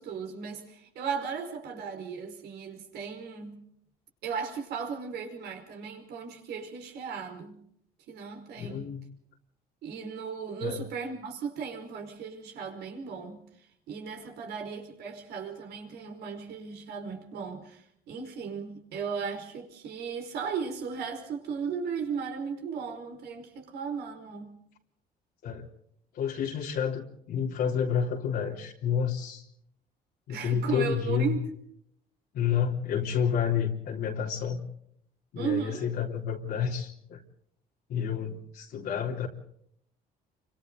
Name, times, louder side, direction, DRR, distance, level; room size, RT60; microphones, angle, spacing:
voice 1, 0.0-3.6 4.2-7.6 8.1-8.8 9.8-24.6 30.3-31.4 35.3-35.8, right 6 dB, 75° right, 4 dB, 4.9 m, -36 dB
voice 2, 8.6-9.0 10.6-10.9 25.4-25.7 26.1-29.4 30.3-31.3 32.3-34.6 35.3-37.2 37.9-39.3, left 7 dB, 70° left, -2 dB, 3.5 m, -29 dB
28.0 x 25.0 x 3.9 m, 0.69 s
cardioid pair, 110°, 17 cm